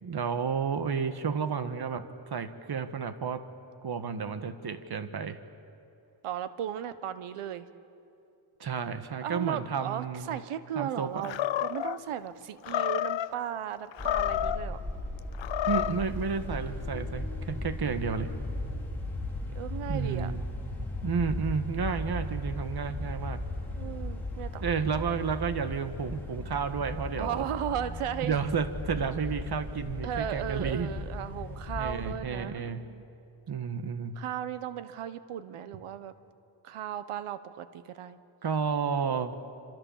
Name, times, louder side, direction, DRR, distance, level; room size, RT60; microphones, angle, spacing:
voice 1, 0.0-3.5 3.8-5.4 8.6-10.4 10.7-11.3 15.7-18.3 19.9-20.4 21.0-23.4 24.6-27.5 28.2-30.9 31.8-32.9 33.5-34.2 38.4-39.4, right 6 dB, 50° right, 10 dB, 1.7 m, -31 dB
voice 2, 6.2-7.7 9.2-14.8 19.4-20.3 23.8-24.7 27.2-28.4 30.0-33.0 34.1-36.1 36.6-38.2, right 10 dB, 85° right, 13 dB, 1.2 m, -36 dB
Animal, 11.2-12.0 12.6-13.3 13.9-14.7 15.3-16.0, left 12 dB, 60° left, 0.8 m, -29 dB
sound 1, 14.0-32.1, left 1 dB, 5° left, 5.1 m, -36 dB
28.0 x 27.0 x 7.4 m, 2.7 s
cardioid pair, 85°, 50 cm